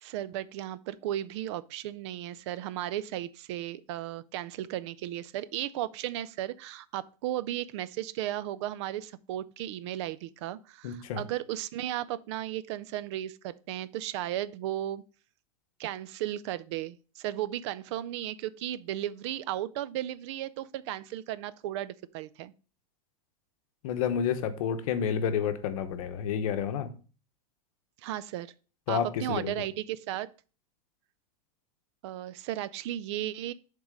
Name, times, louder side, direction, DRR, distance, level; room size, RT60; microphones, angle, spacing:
voice 1, 0.0-15.0 15.8-22.5 28.0-28.5 28.9-30.3 32.0-33.5, right 13 dB, 50° right, 0.4 m, -35 dB
voice 2, 10.8-11.2 23.8-26.9 28.9-29.5, left 8 dB, 65° left, 0.9 m, -30 dB
7.1 x 3.7 x 5.0 m
supercardioid pair, 165°, 20 cm